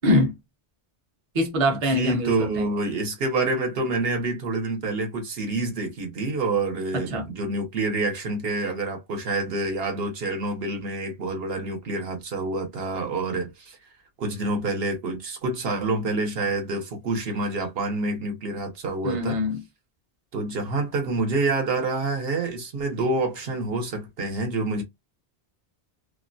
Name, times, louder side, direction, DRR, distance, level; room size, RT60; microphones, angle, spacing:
voice 1, 0.0-0.3 1.3-2.6 6.9-7.3 19.0-19.6, left 1 dB, 40° right, 0.6 m, -23 dB
voice 2, 1.7-13.8 14.2-19.4 20.3-24.8, right 2 dB, 65° right, 1.0 m, -27 dB
2.5 x 2.1 x 2.5 m
omnidirectional pair, 1.1 m